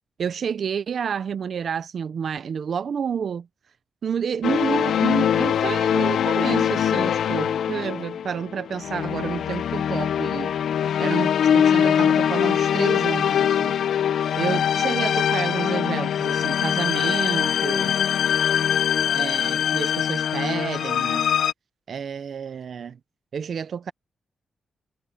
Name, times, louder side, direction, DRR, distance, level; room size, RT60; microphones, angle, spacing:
voice 1, 0.2-3.5 4.0-10.5 11.0-13.7 14.4-18.0 19.1-21.2 21.9-23.0 23.3-23.9, right 7 dB, 50° right, 0.5 m, -29 dB
sound 1, 4.4-21.5, left 9 dB, 70° left, 0.5 m, -22 dB
wide cardioid pair, 180°, 0 cm